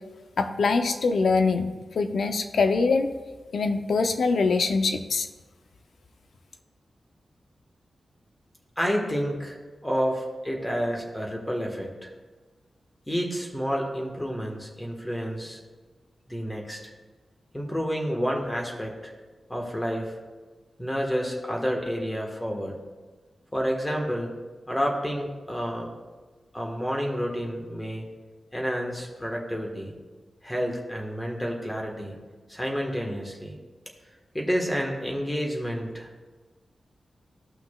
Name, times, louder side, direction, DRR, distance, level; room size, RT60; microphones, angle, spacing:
voice 1, 0.4-1.7 1.9-3.1 3.5-5.3, left 4 dB, 75° left, 6 dB, 0.7 m, -23 dB
voice 2, 8.8-12.1 13.1-15.6 16.3-16.8 17.5-19.1 19.5-20.2 20.8-22.7 23.5-24.3 24.7-25.9 26.5-28.0 28.5-29.9 30.4-32.1 32.5-33.5 34.3-36.1, equal, 10° left, 1 dB, 1.5 m, -29 dB
15.5 x 5.8 x 2.4 m, 1.3 s
wide cardioid pair, 135°, 0 cm